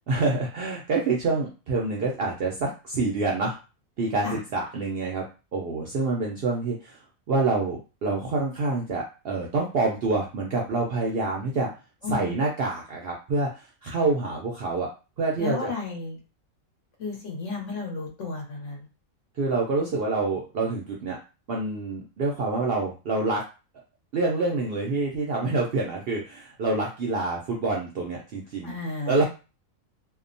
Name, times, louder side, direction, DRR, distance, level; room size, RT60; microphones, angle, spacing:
voice 1, 0.1-3.6 4.0-5.3 5.5-7.0 7.3-11.7 12.1-14.9 15.2-15.7 19.4-21.2 21.5-23.4 24.1-28.8 29.1-29.2, right 3 dB, 65° right, -1 dB, 0.6 m, -27 dB
voice 2, 12.0-12.4 15.4-16.2 17.0-18.9 28.6-29.2, left 4 dB, 65° left, 0 dB, 1.1 m, -33 dB
2.8 x 2.0 x 2.5 m, 0.31 s
omnidirectional pair, 1.4 m